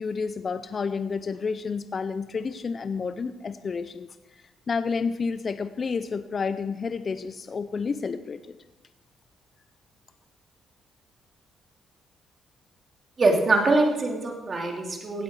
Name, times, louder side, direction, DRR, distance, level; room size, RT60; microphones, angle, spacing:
voice 1, 0.0-4.1 4.7-8.5, left 5 dB, 40° left, 12 dB, 0.6 m, -30 dB
voice 2, 13.2-15.2, right 2 dB, 40° right, 2 dB, 2.8 m, -23 dB
16.5 x 8.4 x 4.9 m, 1.1 s
cardioid pair, 90°, 0 cm